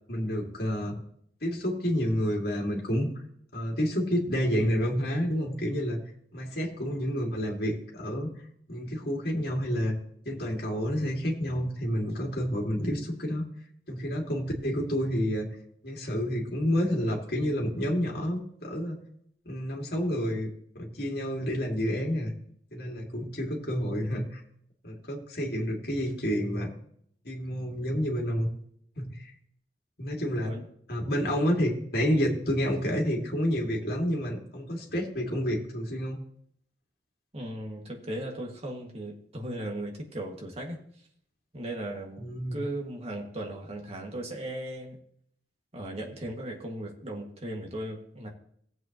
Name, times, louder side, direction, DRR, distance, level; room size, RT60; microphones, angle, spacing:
voice 1, 0.1-1.0 1.4-3.1 3.5-6.0 6.3-8.3 8.7-10.0 10.3-13.5 13.9-15.5 15.8-19.0 19.5-22.3 22.7-24.4 24.8-26.7 27.2-28.5 29.0-29.3 30.0-30.5 30.9-36.2 42.2-42.6, equal, 60° left, 0 dB, 2.2 m, -29 dB
voice 2, 37.3-40.8 41.5-45.0 45.7-48.3, right 1 dB, 35° right, 0 dB, 1.9 m, -37 dB
17.5 x 7.9 x 3.0 m, 0.67 s
head